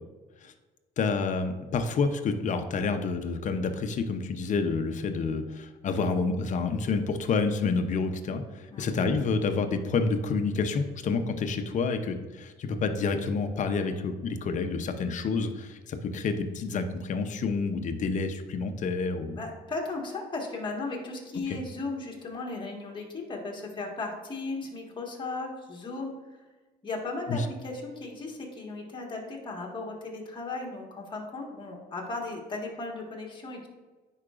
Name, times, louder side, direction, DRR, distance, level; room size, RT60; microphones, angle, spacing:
voice 1, 1.0-19.4 27.3-27.4, left 4 dB, 45° left, 7 dB, 0.7 m, -29 dB
voice 2, 19.3-26.1 26.8-33.7, left 3 dB, 30° left, -1 dB, 1.6 m, -36 dB
9.7 x 4.7 x 2.5 m, 1.3 s
cardioid pair, 110°, 17 cm